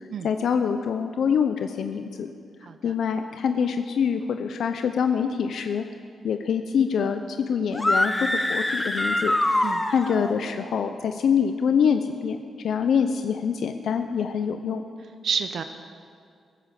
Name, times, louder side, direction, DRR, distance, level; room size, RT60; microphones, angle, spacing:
voice 1, 0.2-2.3 2.8-5.8 6.2-9.3 9.9-14.8, left 7 dB, 75° left, 7 dB, 0.6 m, -25 dB
voice 2, 2.6-2.9 9.6-9.8 15.2-15.6, right 6 dB, 65° right, 8 dB, 0.7 m, -29 dB
sound 1, 7.7-10.3, left 1 dB, 15° left, 1.0 m, -24 dB
16.5 x 10.0 x 7.5 m, 2.2 s
cardioid pair, 105°, 0 cm